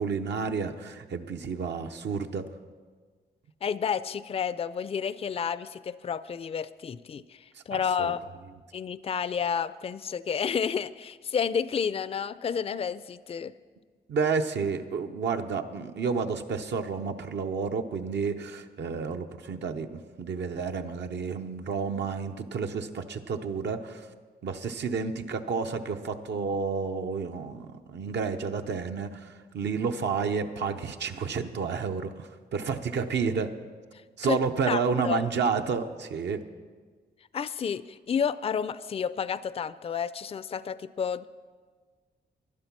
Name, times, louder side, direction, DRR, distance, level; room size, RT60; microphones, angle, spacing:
voice 1, 0.0-2.5 7.5-8.1 14.1-24.1 24.4-33.5 34.2-36.4, right 5 dB, 75° right, 6 dB, 0.7 m, -30 dB
voice 2, 3.6-7.4 7.7-8.2 8.7-13.5 34.2-34.4 34.7-35.3 37.3-41.3, left 7 dB, 35° left, 16 dB, 0.4 m, -30 dB
12.0 x 11.0 x 6.0 m, 1.5 s
cardioid pair, 85°, 18 cm